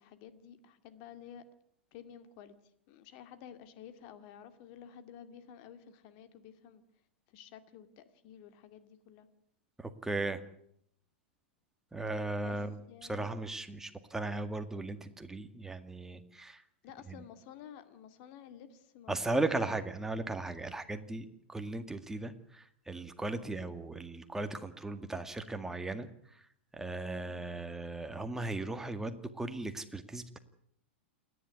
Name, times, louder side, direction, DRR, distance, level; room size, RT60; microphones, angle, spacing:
voice 1, 0.0-1.4 1.9-2.5 2.9-6.8 7.3-9.3 12.4-12.6 12.9-13.2 16.8-19.7 20.7-20.9 27.1-27.4, left 9 dB, 50° left, 10 dB, 2.2 m, -52 dB
voice 2, 9.8-10.4 11.9-12.8 13.1-16.6 19.1-26.1 26.7-30.4, right 2 dB, 5° right, 8 dB, 1.9 m, -37 dB
28.0 x 11.0 x 9.7 m, 0.71 s
hypercardioid pair, 105°, 6 cm